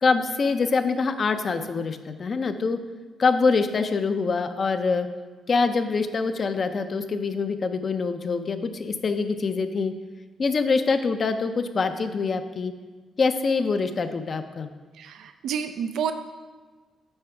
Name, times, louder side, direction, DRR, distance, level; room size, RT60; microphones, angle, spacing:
voice 1, 0.0-2.8 3.2-5.1 5.5-9.9 10.4-12.7 13.2-14.7, left 4 dB, 45° left, 8 dB, 0.5 m, -24 dB
voice 2, 15.0-16.1, right 8 dB, 80° right, 9 dB, 0.4 m, -29 dB
8.8 x 4.7 x 4.5 m, 1.3 s
cardioid pair, 105°, 0 cm